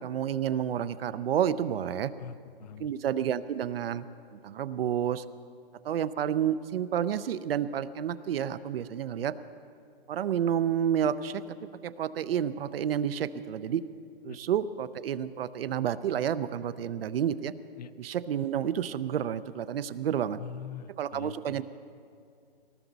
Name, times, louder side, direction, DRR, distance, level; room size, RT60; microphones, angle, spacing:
voice 1, 0.0-2.1 2.8-4.0 4.3-5.2 5.8-9.3 10.1-11.4 11.8-13.8 14.2-17.5 18.0-20.4 21.0-21.6, right 9 dB, 70° right, 14 dB, 0.6 m, -30 dB
voice 2, 2.2-2.9 14.3-14.4 17.8-17.9 20.4-21.6, left 7 dB, 45° left, 16 dB, 0.5 m, -43 dB
19.0 x 14.0 x 4.0 m, 2.4 s
hypercardioid pair, 170°, 30 cm